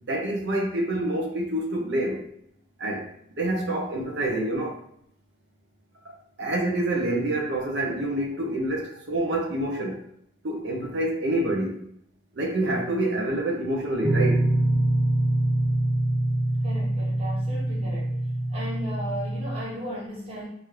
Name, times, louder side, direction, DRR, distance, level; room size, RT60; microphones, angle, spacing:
voice 1, 0.1-2.2 2.8-3.1 3.4-4.8 6.0-6.1 6.4-10.0 10.4-11.8 12.4-14.5, right 1 dB, 70° right, 0 dB, 0.6 m, -27 dB
sound 1, 14.0-19.6, right 1 dB, 5° right, 0.5 m, -24 dB
voice 2, 16.6-18.1 18.5-20.5, equal, 30° right, -6 dB, 1.0 m, -36 dB
3.0 x 2.4 x 3.1 m, 0.70 s
head